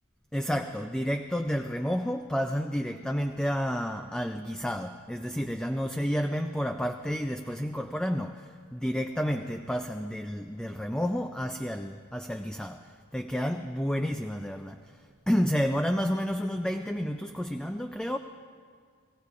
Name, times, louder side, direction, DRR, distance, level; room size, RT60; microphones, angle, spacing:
voice 1, 0.3-18.2, equal, 5° left, 6 dB, 0.3 m, -30 dB
29.5 x 19.0 x 2.5 m, 2.1 s
head